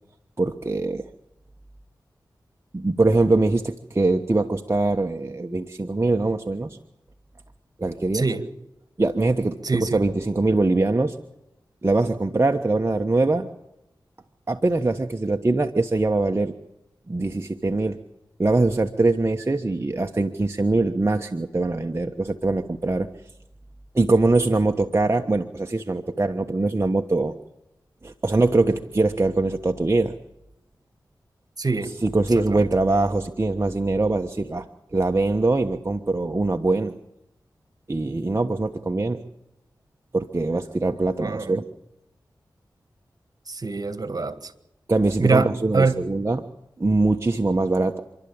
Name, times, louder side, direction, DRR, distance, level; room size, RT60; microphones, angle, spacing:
voice 1, 0.4-1.1 2.7-6.8 7.8-8.3 9.0-11.2 11.8-13.5 14.5-16.5 17.1-18.0 18.4-23.1 23.9-27.3 28.0-30.1 32.0-37.0 37.9-39.2 40.1-41.6 44.9-46.4 46.8-48.0, right 2 dB, 35° right, 4 dB, 1.2 m, -22 dB
voice 2, 9.6-10.0 31.6-31.9 32.4-32.7 41.2-41.6 43.5-44.5 45.2-46.0, right 4 dB, 50° right, 11 dB, 1.9 m, -24 dB
28.5 x 12.0 x 8.8 m, 0.86 s
cardioid pair, 40°, 8 cm